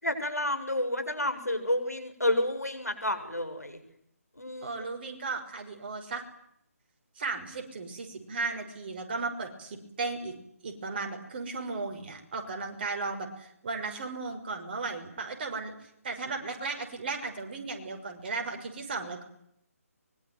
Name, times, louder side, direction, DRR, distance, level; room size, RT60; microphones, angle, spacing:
voice 1, 0.0-3.8 4.4-4.8, left 1 dB, 85° left, 9 dB, 7.6 m, -30 dB
voice 2, 4.6-6.2 7.2-10.4 10.6-15.7 16.0-19.2, right 3 dB, 40° right, 5 dB, 6.0 m, -35 dB
24.5 x 23.5 x 9.6 m, 0.73 s
figure-of-eight pair, 145°, 8 cm